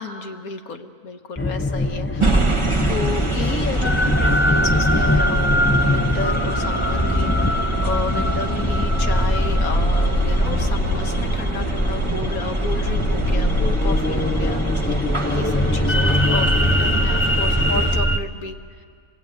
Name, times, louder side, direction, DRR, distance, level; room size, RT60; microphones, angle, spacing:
voice 1, 0.0-2.6 2.9-18.8, left 4 dB, 75° left, 6 dB, 1.9 m, -32 dB
sound 1, 1.4-18.2, left 1 dB, 15° left, 0.4 m, -21 dB
sound 2, 2.2-18.0, right 2 dB, 20° right, 1.4 m, -25 dB
26.5 x 20.0 x 9.1 m, 2.1 s
omnidirectional pair, 1.5 m